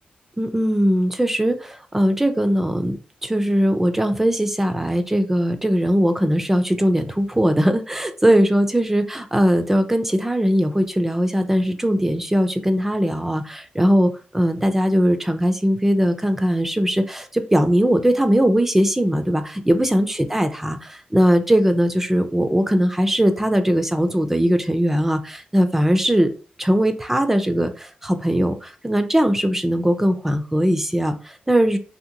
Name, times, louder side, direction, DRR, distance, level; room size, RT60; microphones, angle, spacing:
voice 1, 0.4-26.3 26.6-31.8, equal, 10° right, 8 dB, 0.3 m, -20 dB
2.8 x 2.8 x 2.6 m, 0.37 s
cardioid pair, 100°, 3 cm